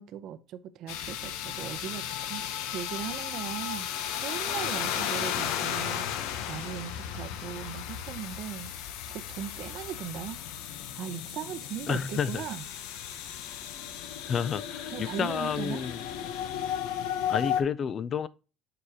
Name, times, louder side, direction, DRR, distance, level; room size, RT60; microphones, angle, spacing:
voice 1, 0.0-3.9 4.2-8.7 9.1-10.4 10.9-12.6 14.9-15.8, right 10 dB, 55° right, 0.6 m, -39 dB
sound 1, 0.9-17.6, left 9 dB, 90° left, 0.8 m, -34 dB
voice 2, 11.9-12.4 14.3-16.0 17.3-18.3, left 7 dB, 35° left, 0.4 m, -30 dB
6.7 x 4.9 x 2.8 m
cardioid pair, 140°, 0 cm